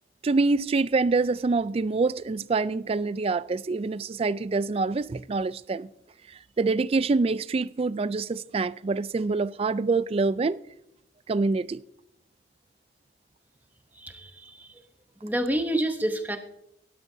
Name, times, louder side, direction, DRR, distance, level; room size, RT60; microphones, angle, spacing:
voice 1, 0.2-5.9 6.6-10.6 11.3-11.8, right 3 dB, 30° right, 0.3 m, -25 dB
voice 2, 13.9-14.8 15.2-16.4, right 1 dB, 10° right, 0.9 m, -29 dB
17.0 x 12.0 x 2.7 m
head